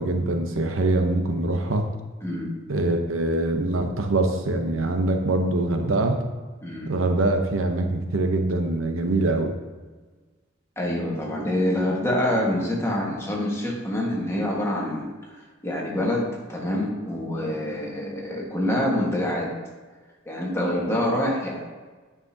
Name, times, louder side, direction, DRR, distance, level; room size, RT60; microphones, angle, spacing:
voice 1, 0.0-1.9 2.7-6.2 6.9-9.5, right 2 dB, 85° right, 5 dB, 0.8 m, -23 dB
voice 2, 2.2-2.5 6.6-6.9 10.8-15.1 15.6-19.5 20.2-21.6, left 1 dB, 15° left, -3 dB, 1.5 m, -26 dB
9.4 x 6.0 x 2.8 m, 1.3 s
head